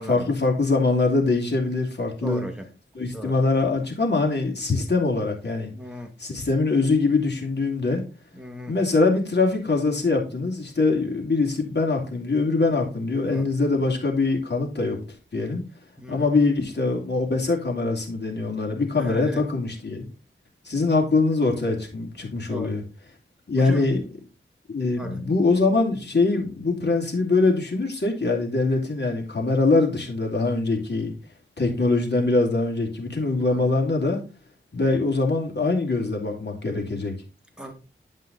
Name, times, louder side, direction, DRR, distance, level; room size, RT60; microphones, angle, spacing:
voice 1, 0.0-2.4 2.9-5.7 6.2-8.0 8.7-15.0 15.3-15.6 16.1-20.0 20.6-22.8 23.5-24.1 24.7-31.1 31.6-34.2 34.7-37.1, left 3 dB, 55° left, 2.7 m, -23 dB
voice 2, 2.2-2.7 3.1-3.4 5.7-6.1 8.4-8.7 13.3-13.5 16.0-16.3 19.0-19.4 22.5-22.7 23.6-23.9 25.0-25.2 33.5-33.6 37.6-37.7, equal, 5° right, 2.1 m, -36 dB
10.5 x 5.5 x 4.0 m
wide cardioid pair, 60°, 21 cm